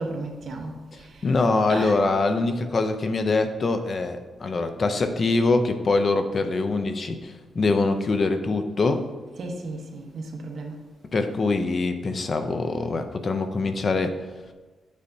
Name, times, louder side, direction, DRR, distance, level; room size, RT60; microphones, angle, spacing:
voice 1, 0.0-1.3 1.7-2.0 9.4-10.8, right 2 dB, 60° right, 1 dB, 1.1 m, -34 dB
voice 2, 1.2-9.1 11.1-14.2, left 3 dB, 40° left, 8 dB, 0.5 m, -24 dB
8.2 x 5.5 x 2.7 m, 1.3 s
cardioid pair, 130°, 0 cm